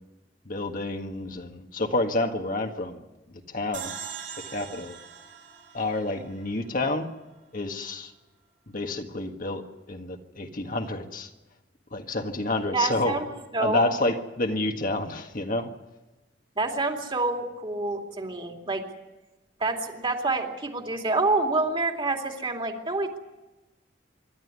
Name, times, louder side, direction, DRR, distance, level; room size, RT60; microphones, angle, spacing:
voice 1, 0.5-3.0 3.5-3.9 4.4-5.0 5.7-7.1 7.5-8.1 8.7-11.3 11.9-13.2 13.6-15.7, left 2 dB, 50° left, 4 dB, 1.7 m, -29 dB
sound 1, 3.7-7.0, right 7 dB, 85° right, 7.9 m, -41 dB
voice 2, 12.7-13.3 13.5-13.8 16.6-18.8 19.6-23.2, right 3 dB, 30° right, 3 dB, 2.6 m, -27 dB
26.0 x 12.5 x 9.6 m, 1.1 s
head